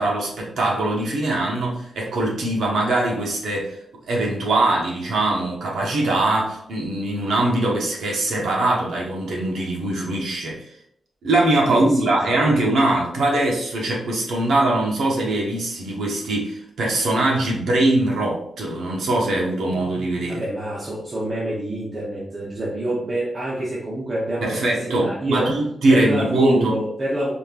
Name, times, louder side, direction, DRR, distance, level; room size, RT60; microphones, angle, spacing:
voice 1, 0.0-3.8 4.1-10.7 11.2-20.4 24.4-26.7, right 2 dB, 90° right, -2 dB, 1.2 m, -22 dB
voice 2, 11.7-12.6 20.3-25.5 25.9-27.3, right 1 dB, 30° right, -6 dB, 0.8 m, -26 dB
4.0 x 3.5 x 2.4 m, 0.67 s
wide cardioid pair, 180°, 0 cm